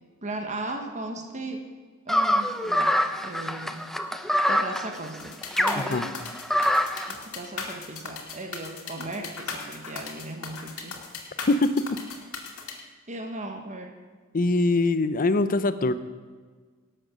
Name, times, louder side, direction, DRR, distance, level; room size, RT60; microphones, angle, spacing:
voice 1, 0.2-1.7 2.0-2.9 3.2-3.8 4.5-6.1 7.1-11.0 13.1-14.0, right 2 dB, 35° right, 4 dB, 1.3 m, -37 dB
sound 1, 2.1-7.1, equal, ahead, 0.7 m, -25 dB
sound 2, 5.2-12.7, left 5 dB, 70° left, 2.4 m, -37 dB
voice 2, 14.3-15.9, left 2 dB, 40° left, 12 dB, 0.7 m, -22 dB
18.0 x 7.9 x 6.3 m, 1.5 s
head